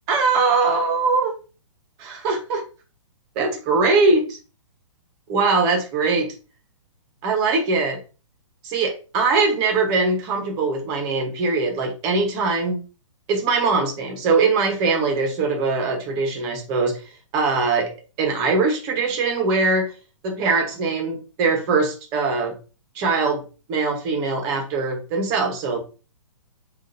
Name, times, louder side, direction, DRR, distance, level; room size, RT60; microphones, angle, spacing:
voice 1, 0.1-1.4 2.0-2.6 3.3-4.4 5.3-6.3 7.2-8.0 8.6-12.8 13.3-17.0 17.3-17.9 18.2-19.9 20.2-22.5 22.9-23.4 23.7-25.8, right 4 dB, 20° right, 3 dB, 0.9 m, -21 dB
7.3 x 2.5 x 2.6 m, 0.34 s
hypercardioid pair, 165°, 17 cm